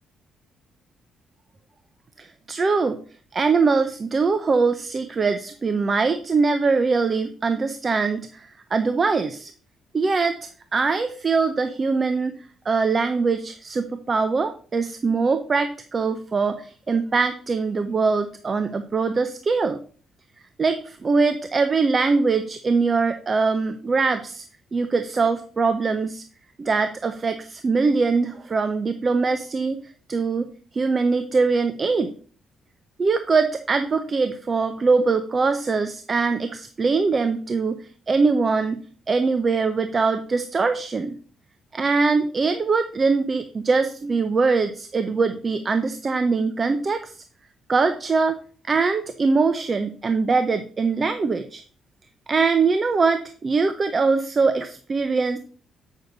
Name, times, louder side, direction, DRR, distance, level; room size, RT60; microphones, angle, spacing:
voice 1, 2.2-3.0 3.3-9.5 9.9-10.3 10.7-19.8 20.6-24.4 24.7-26.2 26.6-29.8 30.1-32.1 33.0-38.8 39.1-41.2 41.7-47.1 47.7-48.3 48.7-51.6 52.3-55.4, right 4 dB, 35° right, 9 dB, 0.7 m, -22 dB
8.2 x 6.3 x 4.0 m, 0.44 s
cardioid pair, 90°, 0 cm